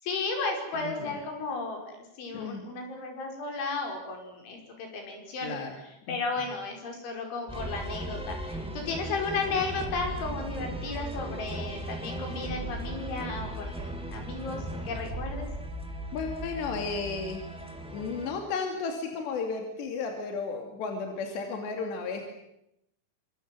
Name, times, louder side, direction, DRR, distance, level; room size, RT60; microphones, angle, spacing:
voice 1, 0.0-5.6 6.1-15.5, left 3 dB, 90° left, 3 dB, 7.7 m, -34 dB
voice 2, 0.7-1.2 2.3-2.6 5.4-5.7 6.1-6.4 16.1-17.4 17.9-22.3, left 4 dB, 70° left, 4 dB, 4.7 m, -34 dB
sound 1, 7.5-18.3, right 1 dB, ahead, 1.8 m, -37 dB
27.5 x 25.5 x 7.8 m, 0.82 s
omnidirectional pair, 5.2 m